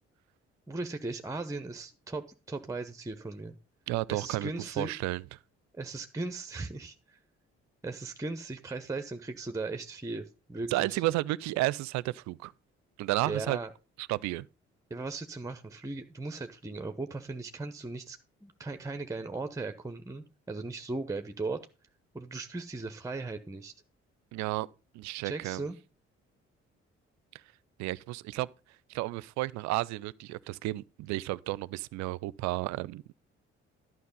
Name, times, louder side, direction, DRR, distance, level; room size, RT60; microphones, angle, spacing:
voice 1, 0.7-3.6 4.1-4.9 5.8-7.2 7.8-11.0 13.2-13.7 14.9-21.6 22.1-23.7 25.2-25.8, right 3 dB, 10° right, 0.8 m, -37 dB
voice 2, 3.9-4.5 4.8-5.2 10.7-12.5 13.0-13.6 14.0-14.5 24.3-24.7 24.9-25.6 27.8-28.5 28.9-33.0, right 18 dB, 55° right, 0.5 m, -32 dB
11.5 x 5.7 x 5.4 m
figure-of-eight pair, 45°, 34 cm